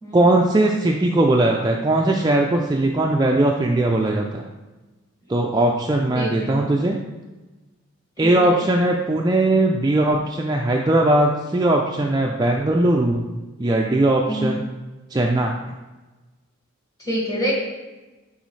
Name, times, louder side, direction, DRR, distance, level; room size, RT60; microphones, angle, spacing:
voice 1, 0.1-4.5 5.3-7.0 8.2-13.3 13.6-14.6 15.1-15.6, right 1 dB, 20° right, 0 dB, 0.3 m, -19 dB
voice 2, 6.2-6.7 8.2-8.7 14.3-14.5 17.0-17.5, equal, 15° left, -5 dB, 1.9 m, -27 dB
9.2 x 4.1 x 3.2 m, 1.2 s
head